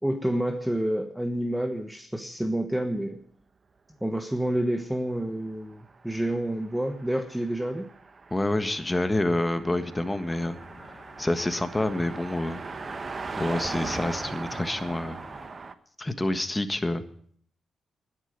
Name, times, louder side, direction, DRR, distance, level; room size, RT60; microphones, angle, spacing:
voice 1, 0.0-3.2 4.0-7.9, right 1 dB, 5° right, 6 dB, 1.2 m, -29 dB
Car passing by, 5.6-15.7, right 4 dB, 40° right, 1.1 m, -39 dB
voice 2, 8.3-10.6 11.2-12.6 13.4-15.2 16.0-17.0, left 1 dB, 15° left, 9 dB, 1.6 m, -27 dB
sound 1, 10.3-15.5, left 2 dB, 35° left, 2.1 m, -49 dB
12.0 x 10.5 x 9.2 m, 0.62 s
cardioid pair, 75°, 0 cm